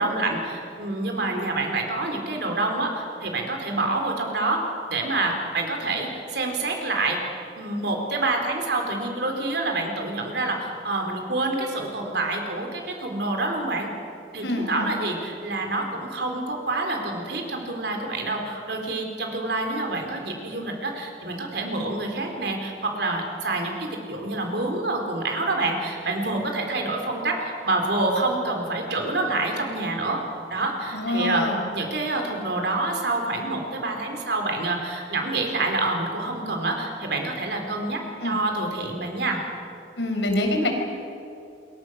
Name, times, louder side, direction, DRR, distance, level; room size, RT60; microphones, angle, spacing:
voice 1, 0.0-4.6 4.9-7.2 7.6-13.9 14.3-30.2 30.5-31.5 31.7-39.4, right 2 dB, 70° right, 3 dB, 4.2 m, -27 dB
voice 2, 14.4-14.9 30.9-31.7 38.2-38.4 40.0-40.7, left 1 dB, 85° left, 3 dB, 4.6 m, -25 dB
27.5 x 23.0 x 6.5 m, 2.7 s
head